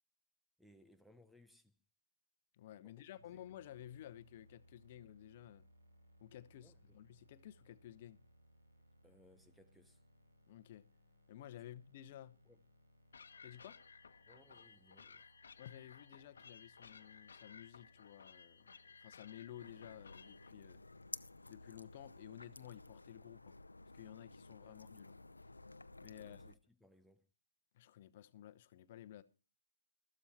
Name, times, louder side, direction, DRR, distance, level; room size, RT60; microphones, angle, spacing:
voice 1, 0.6-1.8 2.8-3.4 6.6-7.0 9.0-10.0 11.6-11.7 12.5-12.6 14.3-15.3 26.2-27.3, left 1 dB, ahead, 0.7 m, -66 dB
voice 2, 2.5-5.6 6.2-8.2 10.5-10.8 11.3-12.4 13.4-13.8 15.6-18.7 19.0-20.8 21.5-23.6 23.9-25.2 26.0-26.4 27.7-29.2, left 12 dB, 45° left, 1.0 m, -54 dB
sound 1, 3.1-22.9, equal, 80° right, 6.0 m, -69 dB
sound 2, 13.1-20.5, left 5 dB, 70° left, 1.2 m, -59 dB
sound 3, 19.6-26.5, left 2 dB, 85° left, 0.8 m, -54 dB
13.5 x 13.0 x 4.2 m
figure-of-eight pair, 130°, 0 cm